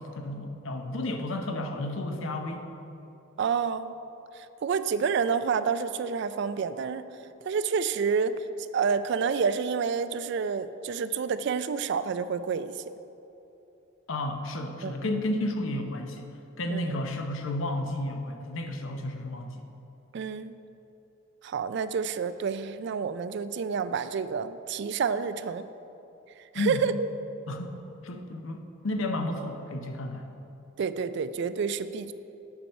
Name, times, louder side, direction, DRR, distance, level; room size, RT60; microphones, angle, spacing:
voice 1, 0.0-2.7 14.1-19.6 26.5-26.9 27.5-27.8 28.0-30.3, left 1 dB, 70° left, 5 dB, 0.8 m, -32 dB
voice 2, 3.4-3.9 4.6-7.0 7.5-12.7 14.8-15.1 16.7-16.9 20.1-20.6 21.4-25.7 26.5-27.1 30.8-32.1, right 6 dB, 55° right, 12 dB, 0.3 m, -29 dB
8.1 x 4.4 x 6.5 m, 2.9 s
head